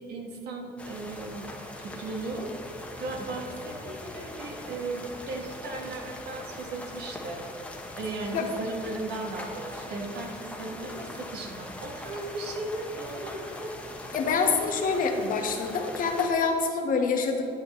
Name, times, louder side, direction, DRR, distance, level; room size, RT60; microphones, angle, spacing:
voice 1, 0.0-1.5 1.8-2.5 3.0-7.4 7.9-13.7, right 2 dB, 75° right, 1 dB, 1.5 m, -36 dB
sound 1, 0.8-16.3, left 1 dB, 5° left, 1.1 m, -41 dB
voice 2, 14.1-17.4, left 4 dB, 55° left, 3 dB, 1.3 m, -26 dB
11.0 x 8.6 x 3.1 m, 2.7 s
cardioid pair, 110°, 17 cm